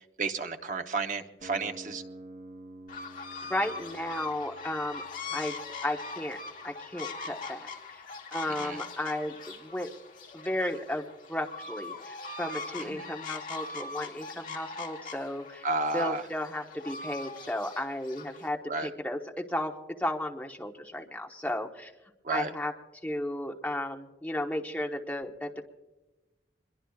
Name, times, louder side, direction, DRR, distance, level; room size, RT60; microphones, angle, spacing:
voice 1, 0.2-2.0 8.6-8.8 12.9-13.0 15.6-16.2 18.7-18.9 22.2-22.5, right 3 dB, 45° right, 6 dB, 0.9 m, -31 dB
sound 1, 1.4-7.4, right 1 dB, 75° right, 3.0 m, -50 dB
sound 2, 2.9-18.5, left 4 dB, 45° left, 1.5 m, -42 dB
voice 2, 3.5-5.0 5.3-6.4 6.6-8.0 8.3-9.9 10.3-15.7 15.9-19.7 20.0-21.9 22.3-22.7 23.0-25.7, left 1 dB, 10° left, 1 dB, 1.1 m, -34 dB
24.5 x 22.0 x 2.4 m, 1.1 s
head